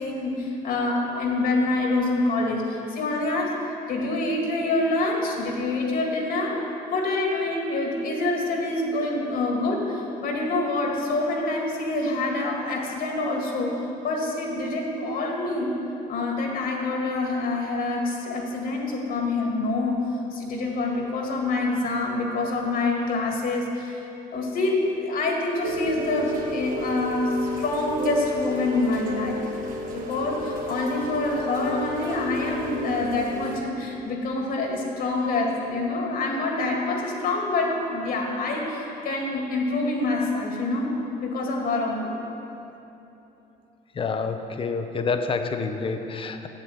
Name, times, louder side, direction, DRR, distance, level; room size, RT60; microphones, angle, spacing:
voice 1, 0.0-3.6 3.9-6.6 6.9-15.8 16.1-24.0 24.3-29.4 29.9-41.0 41.2-42.1, left 2 dB, 60° left, 0 dB, 2.3 m, -26 dB
Rain, 25.6-33.6, equal, 55° right, 1.9 m, -33 dB
voice 2, 44.0-46.5, left 4 dB, 30° left, 7 dB, 0.8 m, -28 dB
8.2 x 8.1 x 7.8 m, 3.0 s
cardioid pair, 110°, 17 cm